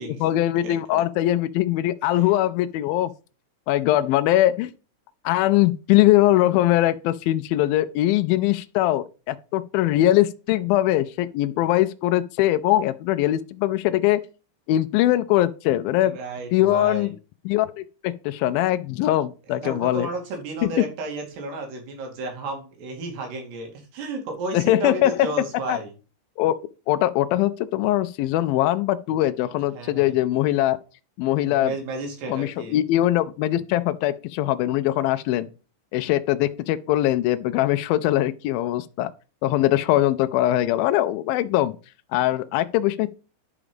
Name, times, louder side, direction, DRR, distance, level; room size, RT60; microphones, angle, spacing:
voice 1, 0.0-3.1 3.7-4.7 5.3-14.2 14.7-16.2 16.5-17.1 17.5-20.1 20.6-20.7 24.5-25.3 25.7-25.8 26.4-26.6 26.9-30.8 31.2-31.7 32.3-35.5 35.9-39.1 39.4-41.8 42.1-43.1, left 14 dB, 80° left, 2.1 m, -21 dB
voice 2, 0.6-1.0 2.1-2.3 11.6-11.7 16.0-17.1 19.5-25.9 29.7-30.1 31.4-32.8, right 3 dB, 90° right, 4.6 m, -33 dB
11.0 x 4.9 x 5.1 m
omnidirectional pair, 4.6 m